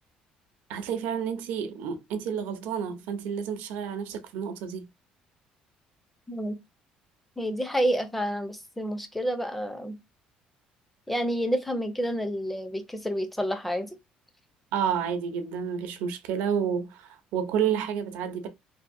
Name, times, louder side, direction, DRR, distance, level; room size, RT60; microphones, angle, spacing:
voice 1, 0.7-4.8 14.7-18.5, right 7 dB, 85° right, 0.6 m, -30 dB
voice 2, 7.4-10.0 11.1-13.9, equal, 5° left, 0.5 m, -29 dB
2.7 x 2.5 x 2.5 m
cardioid pair, 145°, 3 cm